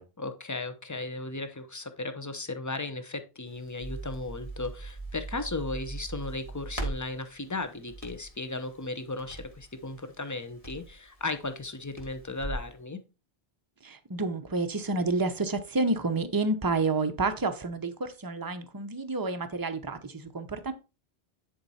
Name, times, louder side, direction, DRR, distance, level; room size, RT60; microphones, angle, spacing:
voice 1, 0.2-13.0, left 2 dB, 20° left, 0.8 m, -36 dB
Crackle, 3.5-12.7, right 2 dB, 35° left, 2.0 m, -41 dB
voice 2, 13.8-20.7, right 3 dB, 25° right, 0.8 m, -29 dB
10.0 x 4.6 x 4.2 m
omnidirectional pair, 1.0 m